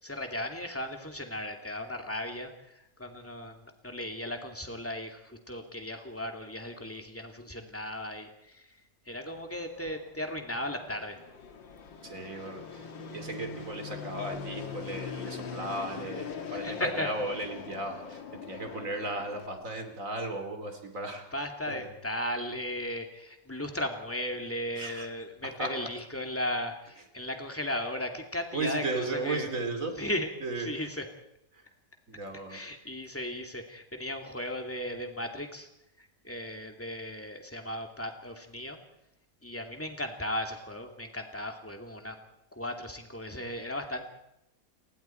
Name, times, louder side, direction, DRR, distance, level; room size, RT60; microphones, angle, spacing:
voice 1, 0.0-8.7 9.1-11.2 16.5-17.1 21.3-29.5 30.0-30.3 30.6-31.0 32.5-35.7 36.0-38.8 39.4-42.2 42.5-44.1, left 1 dB, 5° left, 4 dB, 2.4 m, -36 dB
Fixed-wing aircraft airplane, 9.3-19.5, left 6 dB, 80° left, 2.5 m, -42 dB
voice 2, 12.0-21.3 21.7-21.9 24.8-25.1 25.4-25.7 28.5-30.0 30.4-30.9 31.5-31.6 32.1-32.6, right 2 dB, 45° right, 6 dB, 3.1 m, -36 dB
30.0 x 20.0 x 4.5 m, 0.84 s
omnidirectional pair, 2.0 m